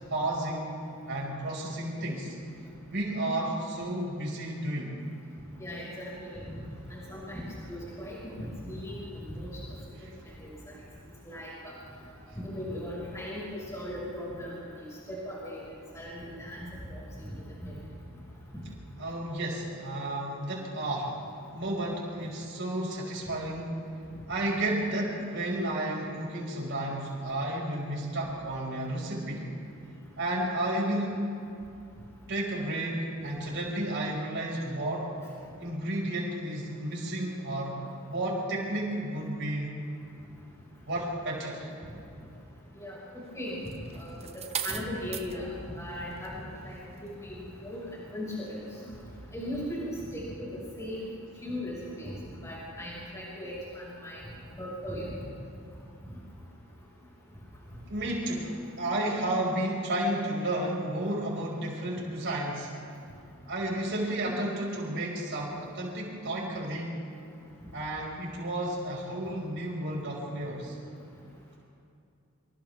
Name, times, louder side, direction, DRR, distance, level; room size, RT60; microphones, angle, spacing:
voice 1, 0.1-2.3 2.9-5.0 19.0-21.2 21.5-23.8 24.3-29.5 30.2-31.3 32.3-35.1 35.6-39.8 40.9-41.7 57.9-62.7 63.5-67.0 67.7-70.8, right 1 dB, 55° right, -3 dB, 5.9 m, -32 dB
voice 2, 5.6-6.4 6.9-9.5 10.3-10.5 11.2-11.8 12.4-15.6 15.9-17.3 17.6-17.7 42.8-43.6 43.9-44.3 44.6-45.5 45.7-47.3 47.6-47.8 48.1-48.6 49.3-50.5 50.8-51.1 51.4-52.2 52.4-54.2 54.6-55.1, equal, 15° left, -6 dB, 5.8 m, -38 dB
sound 1, 43.7-45.4 46.1-46.4, right 8 dB, 30° right, 0.9 m, -36 dB
28.0 x 26.0 x 3.6 m, 2.5 s
head